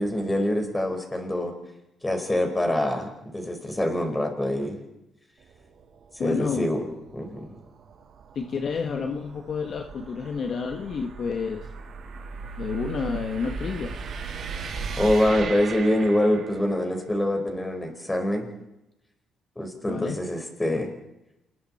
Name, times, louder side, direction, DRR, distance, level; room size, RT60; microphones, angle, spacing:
voice 1, 0.0-1.5 2.0-4.8 6.2-6.9 7.1-7.4 15.0-18.5 19.6-20.9, left 1 dB, 15° left, 4 dB, 5.2 m, -25 dB
sound 1, 5.4-16.8, right 5 dB, 65° right, 4.3 m, -38 dB
voice 2, 6.2-6.7 8.4-11.7 12.6-14.0 19.9-20.2, left 5 dB, 55° left, 4 dB, 1.9 m, -30 dB
28.5 x 21.0 x 4.6 m, 0.89 s
cardioid pair, 90°, 0 cm